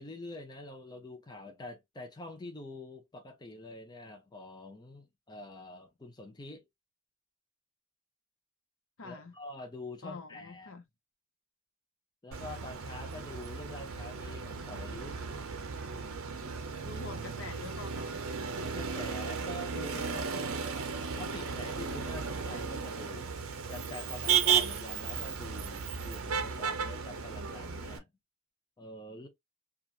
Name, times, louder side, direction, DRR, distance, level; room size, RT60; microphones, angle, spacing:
voice 1, 0.0-6.6 9.0-10.7 12.2-15.2 18.6-20.5 21.2-23.3 23.7-28.1 28.8-29.3, left 1 dB, 20° left, 0.5 m, -45 dB
voice 2, 9.0-9.3 10.0-10.8 16.8-18.3, left 4 dB, 60° left, 0.6 m, -45 dB
Motor vehicle (road), 12.3-28.0, right 6 dB, 65° right, 0.6 m, -35 dB
2.8 x 2.4 x 2.4 m
head